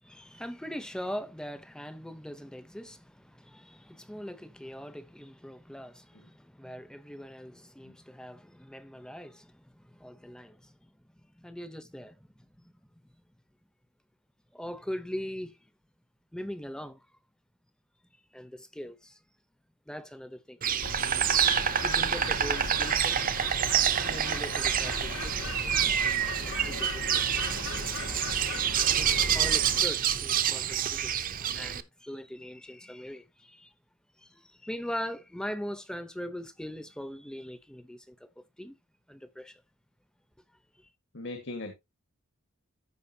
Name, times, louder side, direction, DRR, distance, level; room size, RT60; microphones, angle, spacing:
voice 1, 0.0-13.2 14.5-15.7 16.3-17.0 18.3-19.2 19.9-20.6 21.8-23.2 24.0-27.3 28.8-33.7 34.2-38.8 39.1-39.6 40.7-40.9, equal, 5° left, 0.7 m, -41 dB
Insect, 20.6-31.8, right 9 dB, 40° right, 0.6 m, -27 dB
Bird, 20.8-29.8, left 2 dB, 90° left, 1.9 m, -37 dB
voice 2, 41.1-41.7, left 2 dB, 55° left, 1.6 m, -38 dB
14.0 x 5.2 x 2.8 m
head